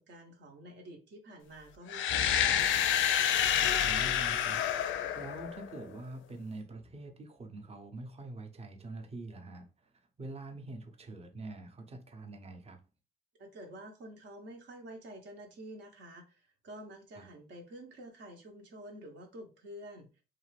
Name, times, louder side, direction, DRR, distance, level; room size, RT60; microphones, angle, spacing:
voice 1, 0.0-2.7 13.4-20.2, right 1 dB, 65° right, 0.8 m, -49 dB
sound 1, 1.9-5.8, left 9 dB, 75° left, 0.4 m, -28 dB
voice 2, 3.6-4.6 4.9-9.7 10.2-12.8 17.2-17.3, right 2 dB, 30° right, 0.7 m, -45 dB
2.5 x 2.4 x 3.1 m
cardioid pair, 90°, 20 cm